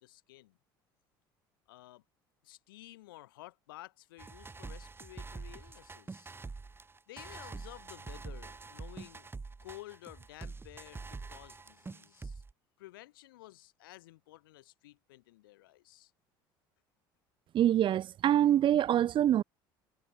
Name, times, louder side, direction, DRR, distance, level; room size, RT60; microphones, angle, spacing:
voice 1, 0.0-0.6 1.7-2.0 2.4-6.3 7.1-9.3 9.6-12.4 12.8-16.1, left 17 dB, 85° left, 3.5 m, -53 dB
sound 1, 4.2-12.5, right 4 dB, 20° right, 2.6 m, -45 dB
voice 2, 17.5-19.4, right 11 dB, 50° right, 1.1 m, -25 dB
hypercardioid pair, 75°, 11 cm